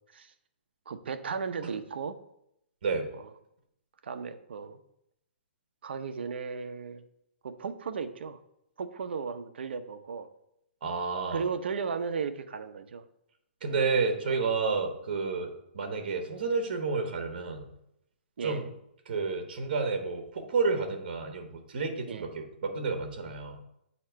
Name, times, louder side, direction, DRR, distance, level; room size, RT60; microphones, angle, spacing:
voice 1, 0.9-2.2 3.2-3.3 4.0-4.8 5.8-7.0 7.4-8.4 8.8-10.3 11.3-13.0 18.4-18.6 22.1-22.3, right 5 dB, 70° right, 10 dB, 0.6 m, -35 dB
voice 2, 10.8-11.5 13.6-17.6 18.4-18.7 19.1-23.6, right 4 dB, 55° right, 4 dB, 1.1 m, -30 dB
8.3 x 2.9 x 4.5 m, 0.79 s
hypercardioid pair, 170°, 6 cm